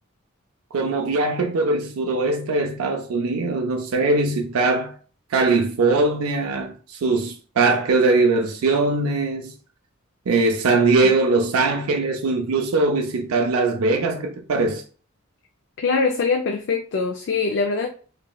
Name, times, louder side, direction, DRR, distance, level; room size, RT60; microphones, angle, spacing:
voice 1, 0.7-5.0 5.3-9.5 10.3-14.8, right 3 dB, 90° right, 0.4 m, -21 dB
voice 2, 15.8-17.9, left 4 dB, 55° left, 0.3 m, -23 dB
3.0 x 2.6 x 2.2 m
head